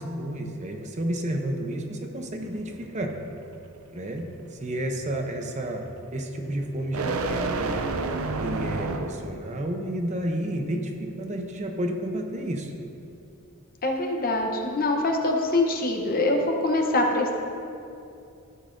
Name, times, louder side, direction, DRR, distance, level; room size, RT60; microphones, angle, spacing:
voice 1, 0.0-3.1 3.9-5.8 6.1-7.8 8.4-12.7, right 1 dB, 30° right, 3 dB, 0.7 m, -31 dB
sound 1, 2.4-9.4, right 3 dB, 70° right, 0.5 m, -32 dB
voice 2, 13.8-17.4, left 2 dB, 40° left, 2 dB, 0.8 m, -24 dB
13.5 x 7.0 x 2.6 m, 2.6 s
head